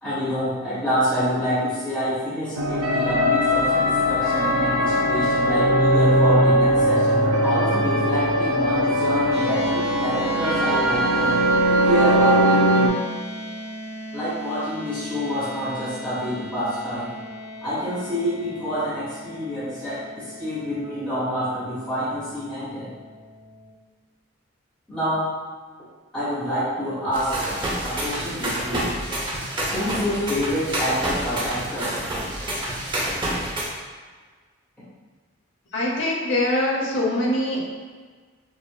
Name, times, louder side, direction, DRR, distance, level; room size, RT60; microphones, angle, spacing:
voice 1, 0.0-11.4 11.7-12.9 14.1-17.1 17.6-22.9 24.9-25.3 26.1-27.4 27.8-28.9 29.7-32.0, equal, 5° left, -14 dB, 1.3 m, -27 dB
sound 1, 2.6-12.9, equal, 85° right, 0.5 m, -20 dB
sound 2, 9.3-23.7, equal, 85° left, 1.0 m, -37 dB
sound 3, 27.1-33.6, right 1 dB, 20° right, 0.6 m, -28 dB
voice 2, 35.7-37.6, left 1 dB, 60° left, -3 dB, 0.7 m, -23 dB
4.7 x 2.4 x 2.2 m, 1.5 s
head